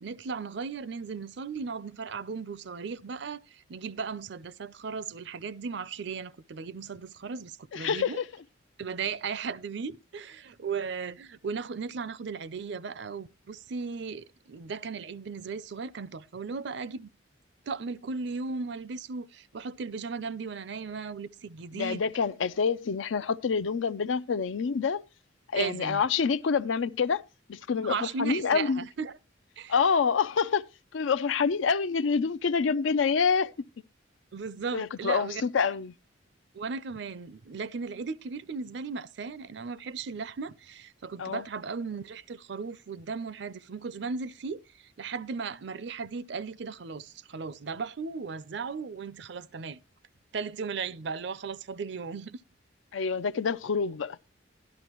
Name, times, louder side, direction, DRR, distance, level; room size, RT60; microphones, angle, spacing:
voice 1, 0.0-8.2 8.8-17.1 17.7-22.0 25.5-26.0 27.8-29.1 29.6-29.7 34.3-35.4 36.5-44.6 45.0-49.8 50.3-52.4, right 5 dB, 65° right, 0.5 m, -36 dB
voice 2, 7.7-8.3 21.7-25.0 25.5-27.2 27.5-28.8 29.7-30.6 30.9-33.5 34.7-35.9 41.2-41.4 52.9-54.2, left 5 dB, 85° left, 0.5 m, -27 dB
12.5 x 11.5 x 3.0 m
head